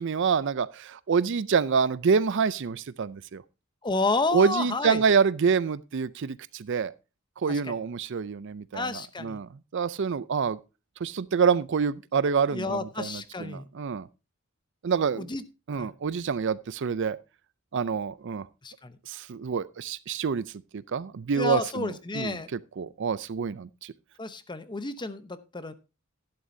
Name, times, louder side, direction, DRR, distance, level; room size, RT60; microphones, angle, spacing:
voice 1, 0.0-3.4 4.3-6.9 7.4-10.6 11.0-14.1 14.8-15.3 15.7-17.2 17.7-18.5 19.1-20.4 20.7-23.9, right 6 dB, 60° right, 0.5 m, -27 dB
voice 2, 3.8-5.0 7.5-7.8 8.7-9.4 12.5-13.7 15.2-15.4 15.7-15.9 18.6-18.9 21.3-22.5 24.2-25.7, left 3 dB, 20° left, 0.8 m, -31 dB
12.0 x 11.0 x 2.7 m
head